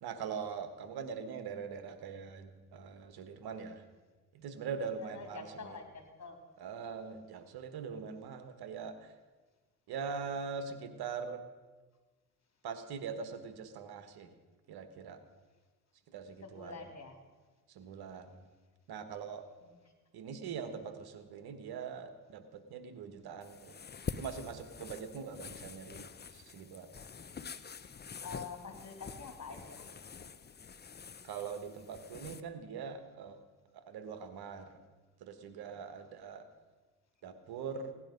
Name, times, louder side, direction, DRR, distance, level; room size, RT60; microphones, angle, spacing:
voice 1, 0.0-3.8 4.3-5.8 6.6-9.1 9.9-11.4 12.6-14.3 14.7-15.2 16.1-16.8 17.7-18.3 18.9-19.4 20.1-23.7 24.2-26.9 31.2-33.4 33.7-34.8 35.2-36.4 37.2-37.9, right 6 dB, 70° right, 9 dB, 1.4 m, -42 dB
voice 2, 5.1-6.4 16.4-17.2 19.6-19.7 28.2-29.9, left 4 dB, 45° left, 4 dB, 3.1 m, -46 dB
sound 1, 23.4-32.4, left 6 dB, 25° left, 0.7 m, -46 dB
17.0 x 10.5 x 5.2 m, 1.3 s
supercardioid pair, 65°, 39 cm